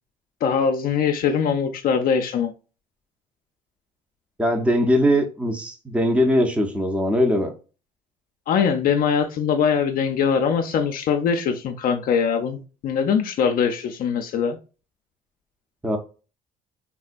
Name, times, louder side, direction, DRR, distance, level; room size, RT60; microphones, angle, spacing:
voice 1, 0.4-2.5 8.5-14.6, left 7 dB, 60° left, 5 dB, 0.4 m, -22 dB
voice 2, 4.4-7.5 15.8-16.0, equal, 5° right, 4 dB, 0.6 m, -20 dB
3.5 x 2.1 x 2.4 m, 0.34 s
cardioid pair, 110°, 17 cm